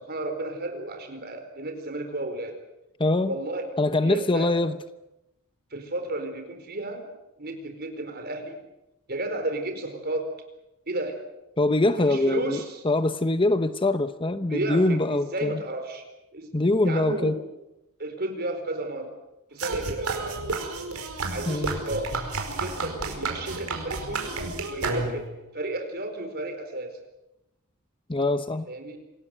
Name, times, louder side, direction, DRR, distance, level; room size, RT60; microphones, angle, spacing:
voice 1, 0.0-2.6 3.3-3.7 4.0-4.5 5.7-7.1 7.4-8.6 9.1-10.3 10.9-11.2 12.0-12.8 14.5-16.0 16.3-17.4 18.0-19.1 19.5-20.4 21.3-22.1 22.4-24.4 24.7-27.0 28.7-29.0, right 2 dB, 45° right, 6 dB, 4.6 m, -33 dB
voice 2, 3.0-3.3 3.8-4.7 11.6-15.6 16.5-17.4 21.5-21.8 28.1-28.7, left 2 dB, 25° left, 11 dB, 0.8 m, -23 dB
sound 1, 19.6-25.4, right 3 dB, 85° right, 5.0 m, -31 dB
27.0 x 19.0 x 7.9 m, 0.93 s
head